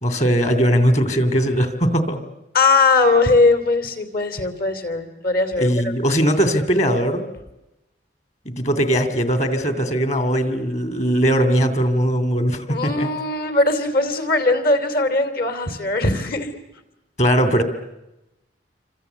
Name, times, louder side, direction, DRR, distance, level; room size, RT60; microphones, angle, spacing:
voice 1, 0.0-2.2 5.6-7.2 8.4-13.1 17.2-17.6, equal, 40° left, 10 dB, 2.7 m, -19 dB
voice 2, 2.5-5.9 12.7-16.5, left 3 dB, 55° left, 10 dB, 3.1 m, -19 dB
27.5 x 25.5 x 8.2 m, 0.95 s
head